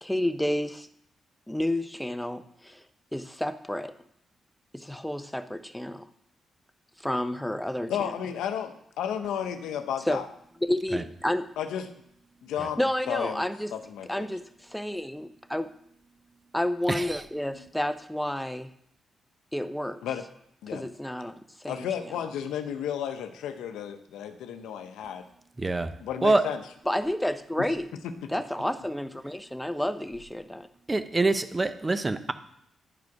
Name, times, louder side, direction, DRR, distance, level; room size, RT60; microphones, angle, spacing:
voice 1, 0.0-0.9 1.5-2.8 3.1-3.9 4.7-6.1 7.0-8.1 10.1-10.2 10.6-11.5 12.8-13.7 14.1-15.7 16.5-18.7 19.5-20.0 20.7-21.9 26.9-27.9 28.3-30.7, left 1 dB, 5° left, 10 dB, 0.7 m, -30 dB
voice 2, 7.9-10.3 11.6-11.9 12.4-12.8 13.1-13.4 13.7-14.3 20.0-20.3 20.6-20.9 21.7-25.2 26.0-26.6 28.0-28.1, left 9 dB, 90° left, 8 dB, 0.7 m, -33 dB
voice 3, 16.9-17.2 25.6-25.9 26.2-26.4 30.9-32.3, right 2 dB, 25° right, 10 dB, 0.8 m, -25 dB
11.0 x 4.8 x 4.7 m, 0.72 s
supercardioid pair, 55°, 0 cm